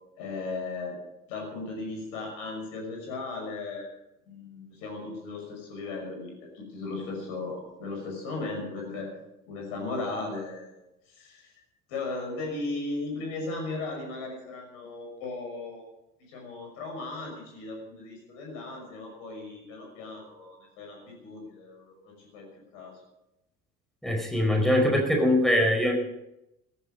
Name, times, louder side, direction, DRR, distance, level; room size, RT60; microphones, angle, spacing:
voice 1, 0.2-1.0 1.3-3.9 4.3-9.1 9.5-10.7 11.1-11.5 11.9-15.8 16.3-22.5 22.7-23.0, left 3 dB, 60° left, 2 dB, 6.0 m, -36 dB
voice 2, 24.0-25.9, left 1 dB, ahead, 2 dB, 5.1 m, -22 dB
16.5 x 15.5 x 5.4 m, 0.87 s
figure-of-eight pair, 60°, 41 cm